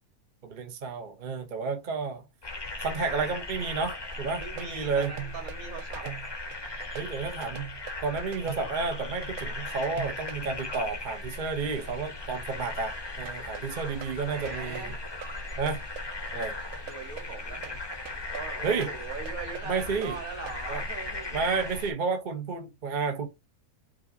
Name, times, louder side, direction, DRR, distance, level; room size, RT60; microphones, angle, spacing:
voice 1, 0.4-2.2 2.8-5.1 6.0-6.1 6.9-7.7 8.0-14.9 15.6-15.8 16.3-16.6 18.6-18.9 19.6-20.2 20.7-20.8 21.3-23.3, right 4 dB, 40° right, 0.8 m, -31 dB
sound 1, 2.4-21.9, left 2 dB, 20° left, 0.7 m, -38 dB
sound 2, 4.1-10.8 13.3-20.6, right 9 dB, 90° right, 1.1 m, -43 dB
voice 2, 4.4-6.0 14.3-15.0 16.9-17.9 18.3-21.5, right 5 dB, 70° right, 1.6 m, -40 dB
5.1 x 2.9 x 2.6 m
omnidirectional pair, 1.5 m